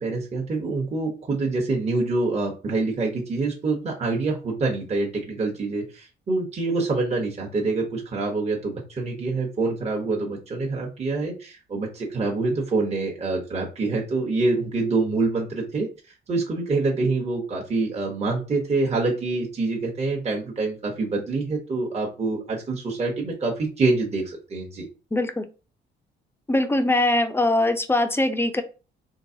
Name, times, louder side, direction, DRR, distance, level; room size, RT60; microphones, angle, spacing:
voice 1, 0.0-15.9 16.3-24.8, right 3 dB, 35° right, -1 dB, 1.0 m, -26 dB
voice 2, 25.1-25.5 26.5-28.6, left 2 dB, 10° left, 7 dB, 0.5 m, -22 dB
3.8 x 3.2 x 2.7 m, 0.34 s
cardioid pair, 90°, 20 cm